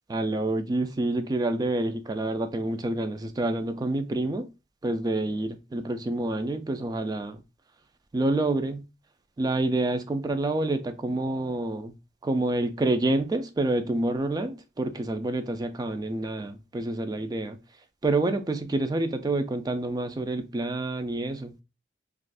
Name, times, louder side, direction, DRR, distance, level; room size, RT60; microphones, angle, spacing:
voice 1, 0.1-4.5 4.8-7.4 8.1-8.8 9.4-11.9 12.2-17.6 18.0-21.6, right 2 dB, 20° right, 0.3 m, -28 dB
2.4 x 2.4 x 3.3 m
head